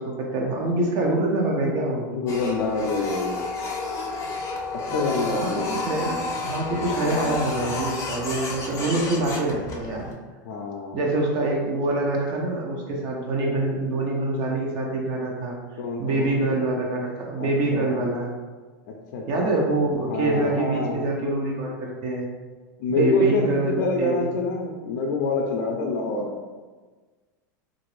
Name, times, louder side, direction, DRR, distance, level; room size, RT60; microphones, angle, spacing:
voice 1, 0.0-2.1 5.2-10.1 10.9-15.6 16.0-18.3 19.3-22.3 22.9-24.3, right 2 dB, 45° right, -1 dB, 0.6 m, -25 dB
voice 2, 2.1-3.4 4.9-5.8 10.4-11.0 15.8-16.6 17.4-18.0 19.1-21.0 22.8-26.3, left 3 dB, 70° left, -1 dB, 0.5 m, -27 dB
Printer, 2.3-10.1, left 3 dB, 30° left, 0.6 m, -31 dB
2.8 x 2.5 x 3.1 m, 1.3 s
supercardioid pair, 120°, 10 cm